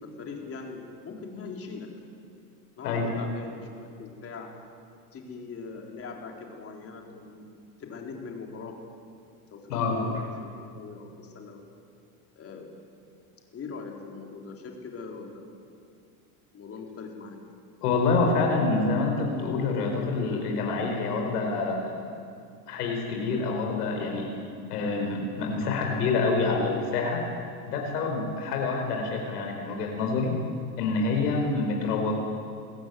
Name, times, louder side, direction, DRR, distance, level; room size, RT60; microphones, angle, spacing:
voice 1, 0.0-1.9 2.8-4.5 5.1-7.5 7.8-8.8 9.5-9.6 9.9-11.6 12.4-12.7 13.5-15.6 16.5-17.4, left 4 dB, 30° left, 1 dB, 4.1 m, -41 dB
voice 2, 17.8-22.1 22.7-24.3 24.7-27.2 27.7-30.3 30.8-32.1, left 3 dB, 85° left, 1 dB, 4.7 m, -27 dB
22.0 x 15.5 x 9.4 m, 2.3 s
supercardioid pair, 120°, 45 cm